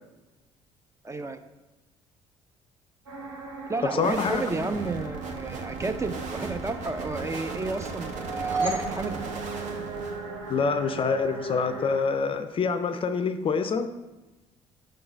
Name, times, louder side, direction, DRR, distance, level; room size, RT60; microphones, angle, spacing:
voice 1, 1.0-1.4 3.7-9.1, right 3 dB, 20° right, 8 dB, 0.5 m, -32 dB
sound 1, 3.1-12.0, right 3 dB, 80° right, 0.9 m, -38 dB
voice 2, 4.0-4.5 10.5-13.9, left 5 dB, 35° left, 10 dB, 0.4 m, -26 dB
sound 2, 4.0-10.7, right 4 dB, 55° right, 0.9 m, -38 dB
sound 3, 8.1-10.4, right 2 dB, 35° right, 1.8 m, -32 dB
5.5 x 3.8 x 5.1 m, 1.1 s
hypercardioid pair, 50°, 15 cm